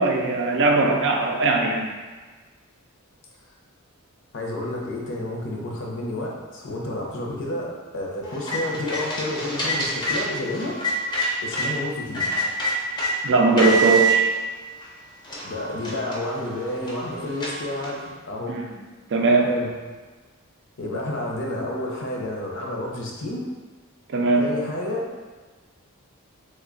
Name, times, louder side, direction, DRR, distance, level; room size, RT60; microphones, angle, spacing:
voice 1, 0.0-1.9 13.2-14.3 18.5-18.6 19.1-19.5 24.1-24.5, right 3 dB, 55° right, 1 dB, 0.4 m, -19 dB
voice 2, 4.3-10.8 11.4-12.3 15.4-18.6 19.4-19.7 20.8-23.4 24.4-25.1, left 1 dB, 60° left, -1 dB, 0.6 m, -30 dB
sound 1, 8.2-11.7 12.1-13.1 13.6-14.2 14.8-14.9 15.2-18.1, right 1 dB, 20° left, 0.5 m, -27 dB
3.1 x 2.2 x 3.7 m, 1.3 s
head